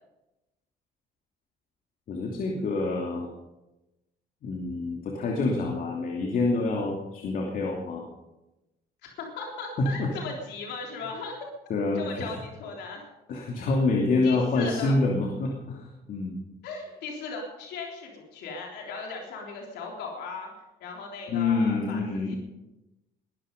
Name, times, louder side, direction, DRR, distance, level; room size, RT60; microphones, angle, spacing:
voice 1, 2.1-3.3 4.4-8.1 9.8-10.1 11.7-12.3 13.3-16.4 21.3-22.4, left 3 dB, 55° left, 0 dB, 2.8 m, -27 dB
voice 2, 9.0-11.4 12.0-13.0 14.2-15.0 16.6-20.5 20.8-22.4, left 4 dB, 80° left, 0 dB, 3.6 m, -37 dB
20.5 x 12.5 x 5.3 m, 0.99 s
cardioid pair, 110°, 17 cm